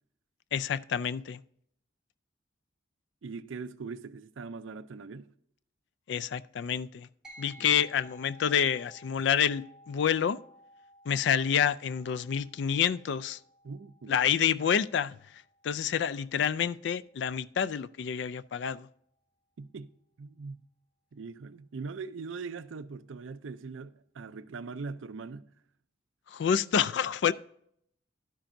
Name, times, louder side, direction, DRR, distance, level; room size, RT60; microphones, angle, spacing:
voice 1, 0.5-1.4 6.1-7.1 7.4-10.4 11.1-13.4 14.1-15.2 15.6-18.9 26.3-27.3, left 8 dB, 65° left, 0.3 m, -28 dB
voice 2, 3.2-5.3 7.6-7.8 13.6-14.2 19.6-19.9 20.2-20.6 21.1-25.5, right 4 dB, 85° right, 0.5 m, -41 dB
sound 1, 7.2-17.0, equal, 5° right, 3.5 m, -56 dB
11.5 x 10.0 x 2.6 m
head